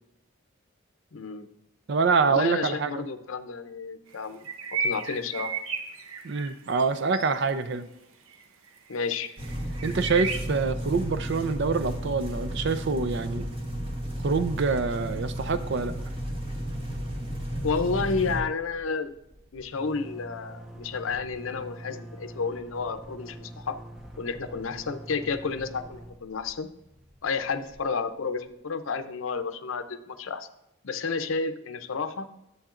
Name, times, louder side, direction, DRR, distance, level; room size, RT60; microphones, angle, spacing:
voice 1, 1.1-1.5 2.2-4.5 4.8-5.5 8.9-9.3 17.6-19.1 19.5-23.8 24.2-26.7 27.2-30.5 30.8-32.3, left 4 dB, 75° left, 10 dB, 0.6 m, -31 dB
voice 2, 1.9-3.0 6.2-7.9 9.8-13.5 14.2-15.9, right 4 dB, 55° right, 11 dB, 0.5 m, -26 dB
sound 1, 4.4-6.8 7.1-7.5 8.3-8.4 8.7-8.9 9.4-10.4, right 4 dB, 90° right, 0.8 m, -33 dB
sound 2, 9.4-18.4, equal, 25° right, 1.0 m, -33 dB
sound 3, 18.7-28.5, right 1 dB, 5° right, 0.5 m, -46 dB
10.5 x 7.8 x 2.5 m, 0.85 s
head